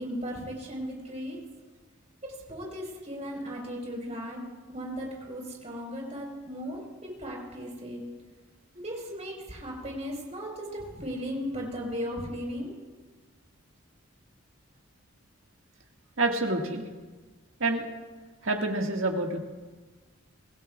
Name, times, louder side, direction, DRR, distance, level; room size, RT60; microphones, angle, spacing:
voice 1, 0.0-1.4 2.5-4.4 4.7-8.0 8.8-12.7, equal, 35° right, -2 dB, 4.6 m, -36 dB
voice 2, 16.2-16.8 17.6-17.9 18.4-19.4, right 2 dB, 75° right, 1 dB, 1.8 m, -27 dB
25.5 x 16.5 x 2.4 m, 1.3 s
head